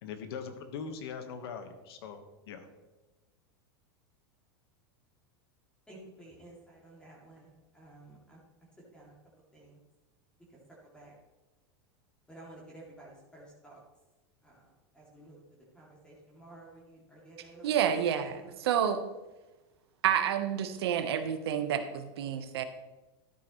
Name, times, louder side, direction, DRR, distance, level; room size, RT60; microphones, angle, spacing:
voice 1, 0.0-2.7, left 6 dB, 75° left, 8 dB, 1.4 m, -41 dB
voice 2, 5.9-8.4 8.9-9.1 9.5-9.8 10.9-11.1 12.3-13.8 14.4-14.6 14.9-15.4 15.7-17.6 17.9-18.0 18.3-18.5, right 2 dB, 5° left, -5 dB, 2.6 m, -53 dB
voice 3, 17.6-19.0 20.0-22.6, right 9 dB, 80° right, 8 dB, 1.2 m, -29 dB
13.0 x 8.7 x 3.2 m, 1.1 s
supercardioid pair, 130°, 13 cm